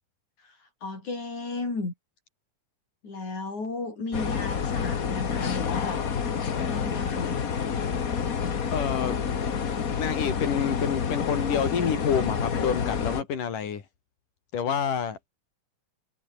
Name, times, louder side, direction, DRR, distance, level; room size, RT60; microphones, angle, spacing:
voice 1, 0.4-1.9 3.0-6.0 6.5-7.4, left 3 dB, 65° left, 9.6 m, -34 dB
sound 1, 4.1-13.2, left 6 dB, 45° left, 1.2 m, -28 dB
voice 2, 8.7-9.2 10.0-13.8 14.5-15.2, left 7 dB, 90° left, 4.6 m, -28 dB
omnidirectional pair, 3.6 m